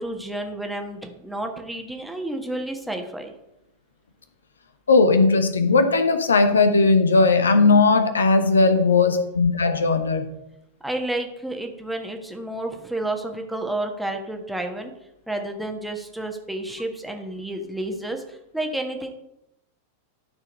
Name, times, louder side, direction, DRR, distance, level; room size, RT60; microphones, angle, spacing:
voice 1, 0.0-3.3 10.8-14.9 15.3-19.1, right 1 dB, ahead, 3 dB, 1.4 m, -30 dB
voice 2, 4.9-10.3, left 3 dB, 70° left, 9 dB, 0.9 m, -18 dB
13.0 x 4.5 x 5.3 m, 0.86 s
figure-of-eight pair, 90°, 0 cm